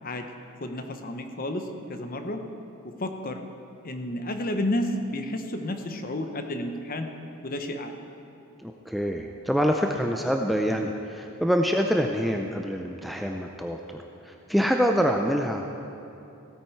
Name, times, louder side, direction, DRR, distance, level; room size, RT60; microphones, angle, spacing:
voice 1, 0.6-2.4 2.8-3.4 3.8-7.1 7.4-7.9, left 1 dB, 40° left, 6 dB, 0.8 m, -31 dB
voice 2, 8.6-14.0 14.2-15.7, equal, ahead, 2 dB, 0.4 m, -26 dB
16.0 x 8.8 x 4.5 m, 2.8 s
head